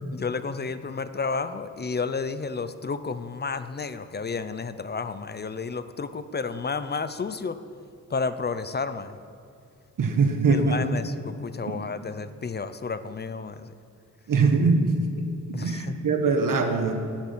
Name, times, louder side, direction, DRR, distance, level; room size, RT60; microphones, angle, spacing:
voice 1, 0.1-7.6 8.1-9.2 10.5-13.7 15.5-16.0, left 4 dB, 30° left, 12 dB, 0.5 m, -31 dB
voice 2, 10.0-10.8 11.7-11.8 14.3-16.9, right 4 dB, 85° right, 5 dB, 1.5 m, -23 dB
18.5 x 7.4 x 7.5 m, 2.4 s
wide cardioid pair, 165°, 32 cm